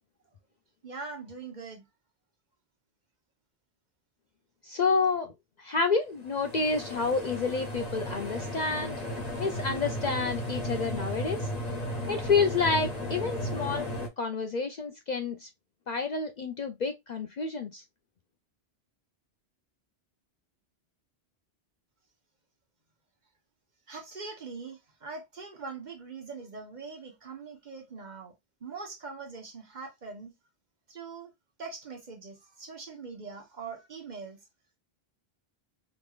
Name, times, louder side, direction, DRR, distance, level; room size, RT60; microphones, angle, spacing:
voice 1, 0.8-1.8 23.9-28.3 28.6-30.3 30.9-31.3 31.6-34.4, right 4 dB, 45° right, 1.1 m, -42 dB
voice 2, 4.7-5.3 5.6-8.9 9.4-11.5 12.1-13.9 14.2-15.5 15.9-17.8, left 4 dB, 55° left, 0.5 m, -29 dB
sound 1, 6.3-14.1, left 1 dB, 40° left, 1.2 m, -35 dB
5.0 x 3.1 x 2.3 m
omnidirectional pair, 1.1 m